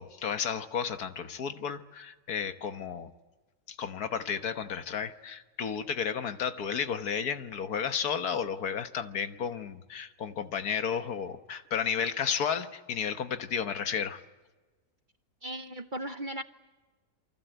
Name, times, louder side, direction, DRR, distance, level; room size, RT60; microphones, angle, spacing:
voice 1, 0.0-3.1 3.7-14.2, left 7 dB, 75° left, 9 dB, 1.7 m, -32 dB
voice 2, 15.4-16.4, right 1 dB, 40° right, 8 dB, 0.9 m, -37 dB
28.0 x 24.0 x 7.9 m, 1.3 s
omnidirectional pair, 1.7 m